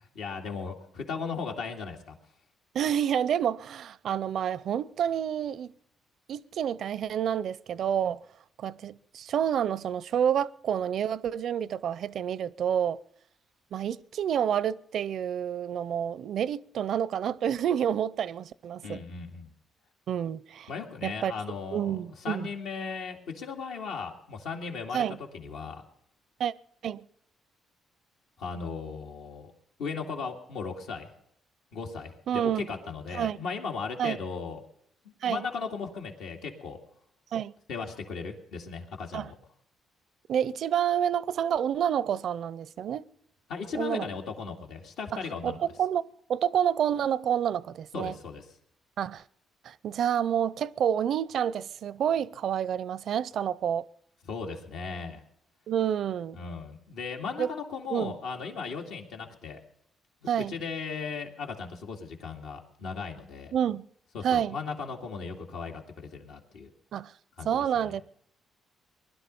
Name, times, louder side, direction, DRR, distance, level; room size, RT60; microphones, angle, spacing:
voice 1, 0.1-2.2 18.8-19.5 20.7-25.0 25.3-25.8 28.4-29.5 29.8-31.1 31.7-34.6 35.0-36.8 37.7-39.3 43.5-45.6 47.9-48.4 54.2-55.2 56.4-59.6 60.2-63.5 64.1-66.7 67.4-67.9, left 5 dB, 90° left, 2.3 m, -37 dB
voice 2, 2.7-5.7 6.3-8.2 8.6-13.0 13.7-19.0 20.1-20.7 21.0-21.3 21.7-22.5 24.9-25.2 26.4-26.5 26.8-27.0 32.3-32.7 33.1-33.4 34.0-34.2 35.2-35.5 37.3-37.5 39.1-39.3 40.3-43.1 43.7-44.1 45.1-48.1 49.0-49.2 49.6-53.9 55.7-56.4 57.4-57.5 57.9-58.2 60.3-60.5 63.5-63.9 64.2-64.6 66.9-67.1 67.4-68.0, right 9 dB, 65° right, 0.5 m, -28 dB
20.5 x 12.0 x 5.4 m
cardioid pair, 90°, 0 cm